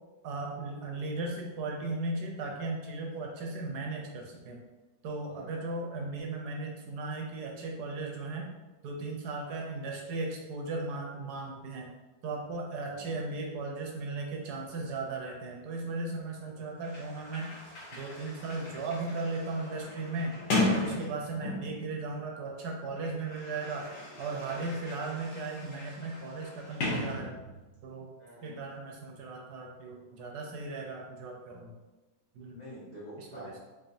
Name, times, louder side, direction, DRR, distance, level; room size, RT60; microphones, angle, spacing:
voice 1, 0.2-4.6 5.0-8.5 8.8-11.9 12.2-17.6 17.9-20.4 20.7-23.9 24.2-27.3 27.8-28.1 28.4-31.7 32.3-32.6 33.2-33.5, right 3 dB, 75° right, 1 dB, 1.2 m, -37 dB
voice 2, 5.3-5.7 12.8-13.2 28.2-28.6 32.5-33.6, equal, 30° left, -8 dB, 1.1 m, -47 dB
Sliding door, 16.5-16.6 16.8-21.9 22.8-27.8, left 2 dB, 80° left, 1.6 m, -36 dB
3.7 x 3.3 x 2.6 m, 1.1 s
omnidirectional pair, 1.8 m